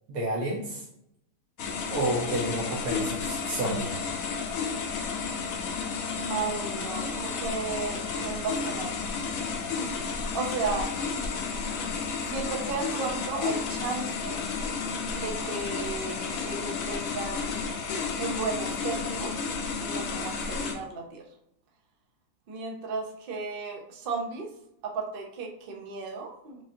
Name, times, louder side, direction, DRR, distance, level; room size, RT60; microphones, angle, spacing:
voice 1, 0.1-0.8 1.9-3.9, right 1 dB, 70° right, -4 dB, 1.2 m, -30 dB
sound 1, 1.6-20.7, left 5 dB, 65° left, 1.0 m, -32 dB
voice 2, 6.3-9.1 9.4-10.9 12.2-14.4 15.1-17.7 18.2-19.5 19.8-21.2 22.5-24.5 24.8-26.6, right 4 dB, 50° right, 1 dB, 0.7 m, -34 dB
4.9 x 2.6 x 2.7 m, 0.75 s
omnidirectional pair, 1.7 m